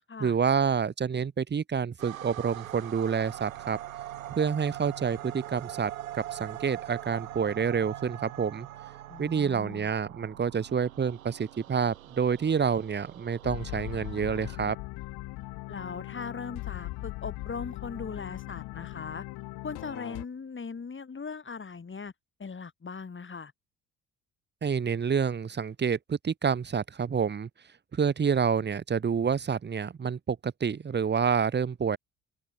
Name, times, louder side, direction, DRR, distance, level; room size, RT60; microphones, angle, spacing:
voice 1, 0.2-3.8 4.3-8.7 9.2-14.8 24.6-27.5 27.9-32.0, right 6 dB, 25° right, 1.2 m, -28 dB
sound 1, 2.0-14.6, right 13 dB, 80° right, 7.0 m, -42 dB
voice 2, 9.1-9.9 15.7-19.2 19.6-22.1 22.4-23.5, left 5 dB, 30° left, 5.7 m, -39 dB
sound 2, 13.4-20.2, left 21 dB, 65° left, 5.4 m, -39 dB
figure-of-eight pair, 55°, 40 cm